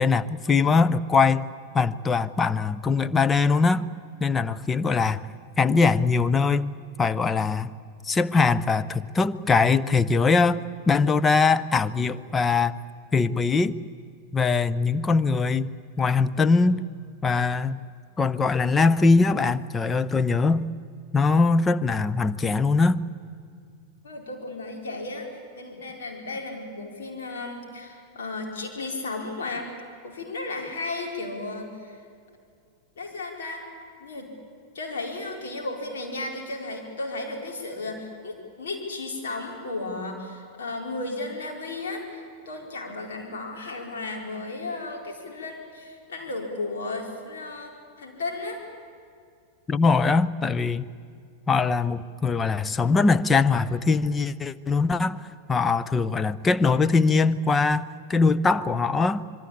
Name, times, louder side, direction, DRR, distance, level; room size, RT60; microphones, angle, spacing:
voice 1, 0.0-1.5 1.7-3.9 4.2-5.2 5.6-6.7 7.0-7.7 8.0-10.6 10.9-12.8 13.1-13.8 14.3-16.9 17.2-17.9 18.2-20.7 21.1-23.0 49.7-50.9 51.5-55.2 55.5-57.8 58.1-59.2, left 4 dB, 15° left, 14 dB, 0.7 m, -22 dB
voice 2, 24.0-25.3 25.6-29.7 30.0-32.0 33.0-33.6 34.0-34.3 34.7-47.7 48.0-48.6, left 2 dB, 60° left, 1 dB, 4.4 m, -34 dB
26.0 x 22.5 x 8.6 m, 2.3 s
figure-of-eight pair, 90°, 0 cm